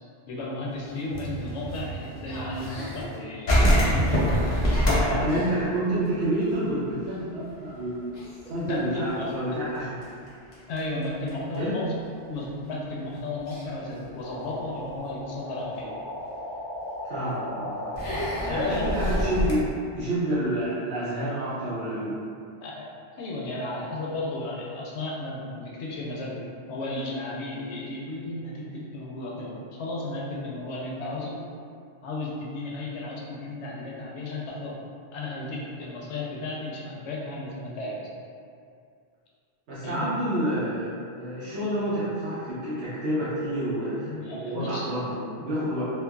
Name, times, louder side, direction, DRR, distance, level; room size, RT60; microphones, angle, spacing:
voice 1, 0.3-4.1 4.9-5.4 8.6-9.6 10.7-11.9 12.3-15.9 18.1-19.0 22.6-26.4 26.7-31.4 32.0-34.8 35.1-38.1 39.8-40.2 41.6-41.7 44.0-44.9, left 2 dB, 85° left, -3 dB, 0.8 m, -34 dB
sound 1, 1.0-3.2 3.5-6.7 7.0-7.1 7.5-7.8 8.1-11.6 12.3-12.4 13.5-13.7 14.2-14.9 15.4-15.5 16.9-17.0 17.9-19.5, equal, 50° left, 0.6 m, -26 dB
voice 2, 5.0-8.1 8.5-10.0 11.6-11.8 17.0-18.0 18.5-19.6 19.9-22.2 39.7-45.9, right 1 dB, 75° right, -11 dB, 0.9 m, -29 dB
sound 2, 14.2-19.4, left 1 dB, 5° right, 0.7 m, -36 dB
3.1 x 2.0 x 2.2 m, 2.3 s
omnidirectional pair, 1.1 m